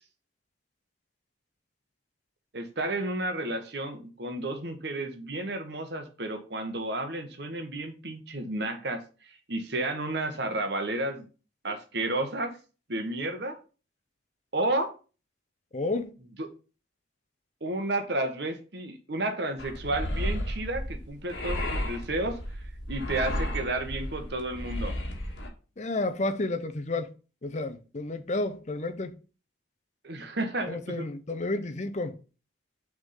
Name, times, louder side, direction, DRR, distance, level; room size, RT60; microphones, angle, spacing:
voice 1, 2.5-11.3 11.6-12.5 12.9-13.6 14.5-14.9 16.4-16.5 17.6-22.4 22.9-24.9 30.0-31.1, right 2 dB, 55° right, 1.2 m, -32 dB
voice 2, 15.7-16.1 25.8-27.1 27.4-29.1 30.7-32.2, left 2 dB, 35° left, 0.6 m, -31 dB
sound 1, 19.6-25.5, left 1 dB, 60° left, 1.7 m, -33 dB
6.5 x 3.7 x 5.5 m
head